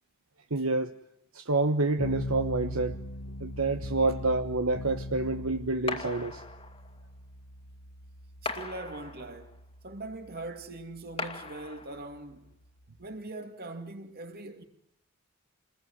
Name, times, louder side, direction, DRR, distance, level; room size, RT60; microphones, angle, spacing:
voice 1, 0.5-0.9 1.3-3.0 3.4-6.4, right 3 dB, 70° right, 1.2 m, -28 dB
sound 1, 2.0-13.1, left 1 dB, 70° left, 1.5 m, -41 dB
sound 2, 5.9-7.0 8.4-9.6 11.2-12.2, left 3 dB, 25° left, 2.3 m, -39 dB
voice 2, 8.4-9.6 9.8-12.4 13.0-14.6, right 2 dB, 45° right, 2.7 m, -41 dB
28.0 x 21.0 x 9.6 m
head